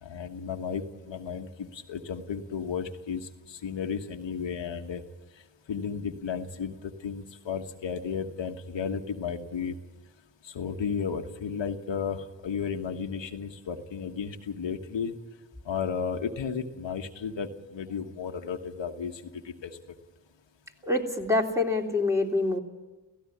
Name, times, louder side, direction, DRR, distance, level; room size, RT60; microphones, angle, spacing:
voice 1, 0.0-5.0 5.7-9.8 10.4-15.1 15.6-19.7, left 6 dB, 80° left, 4 dB, 1.5 m, -33 dB
voice 2, 20.8-22.6, left 2 dB, 5° right, 1 dB, 3.2 m, -26 dB
17.0 x 16.0 x 9.9 m, 1.2 s
cardioid pair, 50°, 44 cm